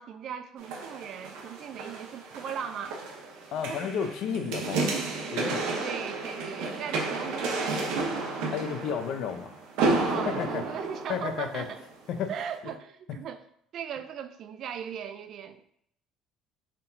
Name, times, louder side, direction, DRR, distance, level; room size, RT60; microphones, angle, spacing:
voice 1, 0.0-3.0 3.7-3.9 5.8-7.8 8.4-8.5 10.1-11.8 12.3-13.4 13.7-15.6, right 8 dB, 50° right, 9 dB, 0.3 m, -38 dB
sound 1, 0.6-11.8 12.4-12.5, right 3 dB, 90° right, 0.8 m, -32 dB
voice 2, 3.5-5.0 5.3-5.7 8.5-9.5 10.2-10.6 11.1-11.6 12.1-12.3, left 7 dB, 65° left, 7 dB, 0.5 m, -32 dB
4.4 x 3.7 x 2.6 m, 0.70 s
cardioid pair, 130°, 0 cm